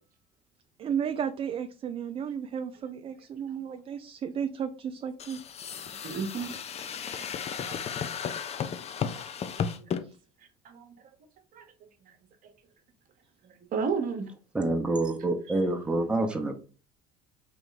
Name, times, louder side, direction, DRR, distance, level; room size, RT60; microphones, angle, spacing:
voice 1, 0.8-5.4 10.0-10.1 15.5-15.6, right 8 dB, 30° right, 0.3 m, -33 dB
sound 1, 5.2-10.0, left 7 dB, 35° left, 0.5 m, -34 dB
voice 2, 6.0-6.5 6.9-8.4 9.0-9.1 9.7-9.9 10.6-10.9 11.5-11.6 12.4-12.5 13.7-14.3, right 5 dB, 50° right, 0.9 m, -34 dB
voice 3, 14.5-16.5, right 2 dB, 5° right, 0.8 m, -27 dB
3.2 x 3.0 x 3.9 m
hypercardioid pair, 80°, 19 cm